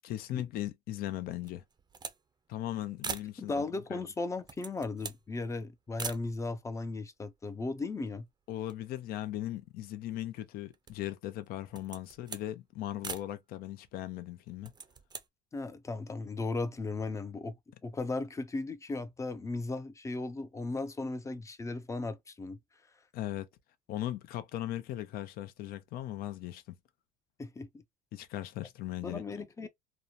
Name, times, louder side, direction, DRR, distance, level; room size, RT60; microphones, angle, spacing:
voice 1, 0.0-1.6 2.5-3.6 3.9-4.1 8.5-14.7 23.1-23.5 23.9-26.6 28.1-29.2, left 13 dB, 60° left, 0.6 m, -38 dB
sound 1, 1.4-2.2 2.5-2.6 3.0-3.4 4.2-5.3 6.0-6.3 7.0-7.1 7.3-8.3 8.6-9.9 10.4-11.1 11.6-12.5 13.0-13.3 14.5-15.3, right 5 dB, 25° right, 0.6 m, -43 dB
voice 2, 3.4-8.3 15.5-17.5 17.8-22.6 27.4-27.8 29.0-29.7, left 3 dB, 15° left, 0.5 m, -36 dB
3.0 x 2.1 x 2.4 m
supercardioid pair, 100°, 17 cm